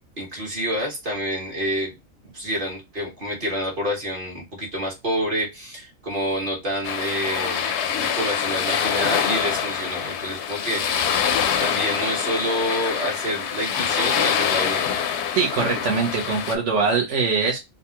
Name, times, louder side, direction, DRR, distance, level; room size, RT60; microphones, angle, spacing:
voice 1, 0.2-1.9 2.3-7.7 8.0-11.1 11.6-14.9, equal, 40° right, -2 dB, 1.6 m, -28 dB
sound 1, 6.8-16.6, left 8 dB, 65° left, 0.8 m, -25 dB
voice 2, 15.3-17.6, right 4 dB, 65° right, -3 dB, 1.2 m, -22 dB
4.0 x 2.3 x 2.8 m, 0.22 s
omnidirectional pair, 1.4 m